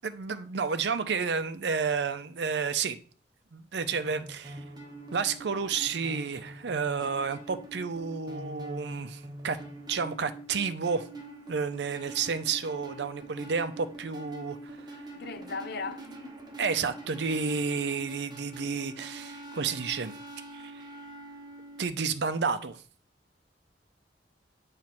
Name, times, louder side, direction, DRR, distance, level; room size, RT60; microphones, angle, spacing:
voice 1, 0.0-3.0 3.5-4.6 5.1-9.6 9.9-11.1 11.5-15.0 16.6-20.1 20.5-20.8 21.8-22.8, right 5 dB, 70° right, 0.6 m, -31 dB
sound 1, 3.8-21.9, right 2 dB, 25° right, 1.2 m, -44 dB
voice 2, 15.2-16.3, left 4 dB, 60° left, 0.6 m, -38 dB
7.4 x 3.2 x 5.8 m
head